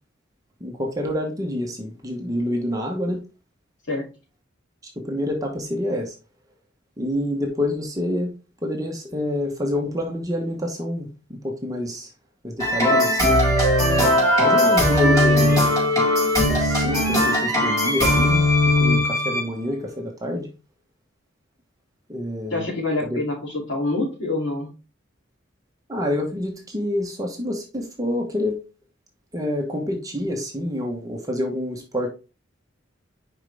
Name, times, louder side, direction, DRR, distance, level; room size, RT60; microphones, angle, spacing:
voice 1, 0.6-3.2 5.0-6.1 7.0-8.3 8.6-12.1 12.4-13.4 14.4-15.7 16.5-18.4 18.8-20.5 22.1-22.7 23.0-23.2 25.9-28.6 29.3-32.1, left 1 dB, 20° right, 1.1 m, -27 dB
sound 1, 12.6-19.5, left 1 dB, 15° left, 4.5 m, -19 dB
voice 2, 22.5-24.7, left 2 dB, 70° left, 2.9 m, -26 dB
7.1 x 5.2 x 3.4 m
head